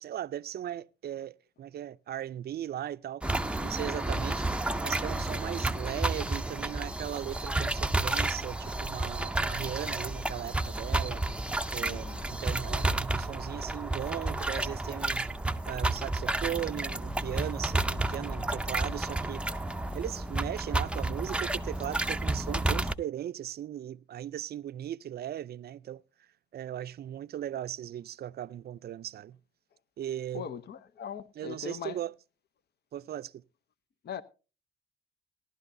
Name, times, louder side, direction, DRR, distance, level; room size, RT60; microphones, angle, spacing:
voice 1, 0.0-3.2 3.6-4.5 4.8-11.3 11.7-15.3 15.7-19.5 19.9-26.0 26.5-29.4 30.0-30.4 31.4-32.1 32.9-33.4, right 11 dB, 55° right, 0.5 m, -38 dB
sound 1, 3.2-22.9, right 2 dB, 5° right, 0.5 m, -31 dB
voice 2, 11.8-12.4 30.3-32.0 34.0-34.2, left 8 dB, 55° left, 0.7 m, -40 dB
16.5 x 12.0 x 2.6 m
cardioid pair, 90°, 20 cm